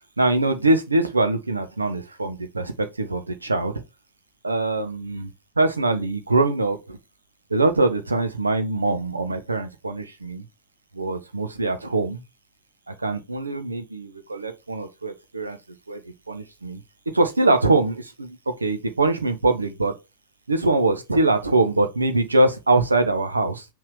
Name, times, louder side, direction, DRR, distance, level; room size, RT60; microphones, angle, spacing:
voice 1, 0.2-3.7 4.4-5.3 5.6-7.0 7.5-10.4 10.9-12.2 12.9-15.6 15.9-16.8 17.1-20.0 20.5-23.6, right 2 dB, 80° right, 1.0 m, -23 dB
5.8 x 3.7 x 4.7 m
figure-of-eight pair, 90°, 0 cm